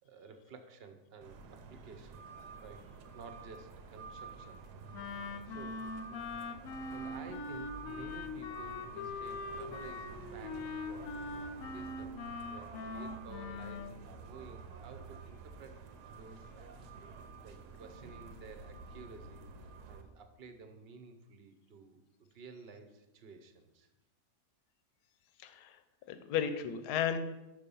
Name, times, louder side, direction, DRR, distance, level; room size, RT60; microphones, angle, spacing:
voice 1, 0.0-2.2 2.6-2.9 3.1-4.6 5.5-5.8 6.1-6.5 6.9-11.2 11.6-12.2 12.5-15.8 16.1-16.7 17.4-19.5 19.9-22.0 22.3-23.9, right 4 dB, 50° right, 7 dB, 0.8 m, -52 dB
sound 1, 1.2-20.0, right 4 dB, 90° right, 1.3 m, -50 dB
Wind instrument woodwind instrument, 4.9-13.9, left 3 dB, 65° left, 1.0 m, -42 dB
voice 2, 25.4-25.8 26.1-27.2, left 8 dB, 85° left, 9 dB, 1.2 m, -34 dB
6.5 x 5.4 x 5.3 m, 0.99 s
omnidirectional pair, 1.7 m